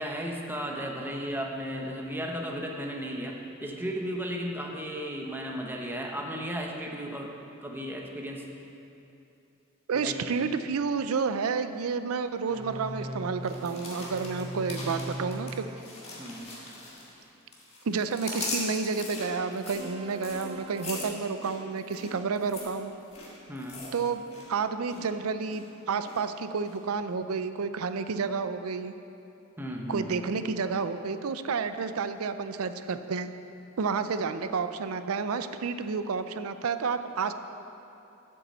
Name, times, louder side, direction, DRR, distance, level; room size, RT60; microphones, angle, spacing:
voice 1, 0.0-7.3 7.6-8.4 9.9-10.3 16.2-16.5 23.5-23.8 29.6-30.3, equal, 10° right, 0 dB, 1.0 m, -35 dB
voice 2, 9.9-15.6 17.8-22.9 23.9-28.9 29.9-33.3 33.8-37.3, right 5 dB, 90° right, 10 dB, 0.5 m, -30 dB
sound 1, 12.4-15.9 19.7-21.0, right 1 dB, 25° right, 0.5 m, -40 dB
sound 2, 13.4-17.2 17.5-24.5 24.7-25.1 25.5-26.2 26.6-26.7, left 2 dB, 30° left, 2.0 m, -40 dB
8.3 x 6.9 x 7.4 m, 2.8 s
head